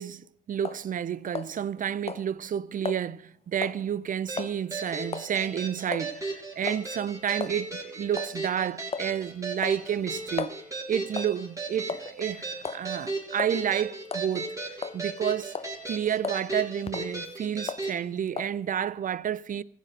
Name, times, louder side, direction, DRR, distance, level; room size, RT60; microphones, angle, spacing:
voice 1, 0.0-10.5 10.9-15.6 15.9-19.6, right 9 dB, 45° right, 0.5 m, -30 dB
sound 1, 0.6-0.9 1.4-1.8 2.1-2.3 2.9-3.0 3.6-3.8 4.4-4.5 5.1-5.3 5.9-6.1 6.7-6.9 7.4-7.6 8.2-8.3 8.9-9.2 9.6-10.6 11.2-11.4 11.9-12.2 12.7-12.9 13.4-13.6 14.1-14.3 14.8-15.2 15.6-15.8 16.2-16.5 16.9-17.1 17.7-17.9 18.4-18.6, left 5 dB, 30° left, 0.8 m, -35 dB
sound 2, 4.3-18.0, right 3 dB, 15° right, 3.0 m, -36 dB
15.0 x 7.7 x 6.3 m
cardioid pair, 90°, 20 cm